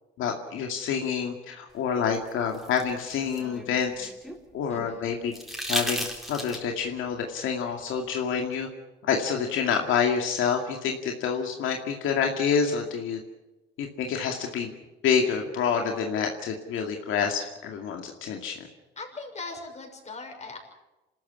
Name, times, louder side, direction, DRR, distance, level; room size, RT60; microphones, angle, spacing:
voice 1, 0.2-4.1 4.5-5.3 5.7-8.7 9.0-13.2 13.8-14.7 15.0-18.7, left 6 dB, 85° left, 3 dB, 2.3 m, -27 dB
sound 1, 2.1-4.4 5.3-6.8 8.5-8.6, equal, ahead, 4.3 m, -34 dB
voice 2, 4.7-5.0 19.0-20.6, left 3 dB, 35° left, 2 dB, 6.3 m, -40 dB
27.5 x 13.5 x 8.5 m, 1.0 s
cardioid pair, 90°, 20 cm